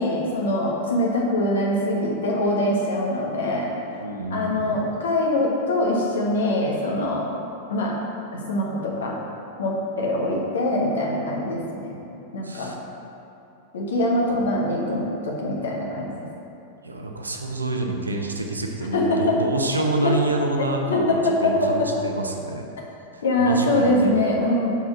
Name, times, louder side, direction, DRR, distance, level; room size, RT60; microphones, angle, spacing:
voice 1, 0.0-3.7 4.3-7.2 7.7-8.0 8.3-9.2 9.6-11.9 12.3-12.7 13.7-16.1 18.9-19.4 19.7-20.1 20.6-21.9 23.2-24.7, left 1 dB, 65° left, -2 dB, 1.3 m, -23 dB
voice 2, 4.0-4.8 12.4-12.7 14.3-14.5 16.8-22.7 23.1-24.2, right 2 dB, 80° right, 3 dB, 0.6 m, -27 dB
5.8 x 4.2 x 5.9 m, 2.8 s
figure-of-eight pair, 90°, 0 cm